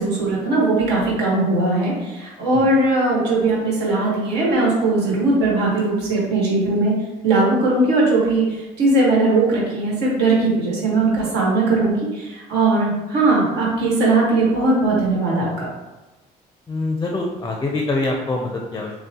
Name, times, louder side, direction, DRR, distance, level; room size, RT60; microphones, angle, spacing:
voice 1, 0.0-6.9 7.2-8.4 8.8-15.7, right 2 dB, 90° right, -5 dB, 1.4 m, -19 dB
voice 2, 16.7-18.9, left 2 dB, 20° left, 1 dB, 0.4 m, -24 dB
6.2 x 2.1 x 2.8 m, 1.1 s
cardioid pair, 110°, 17 cm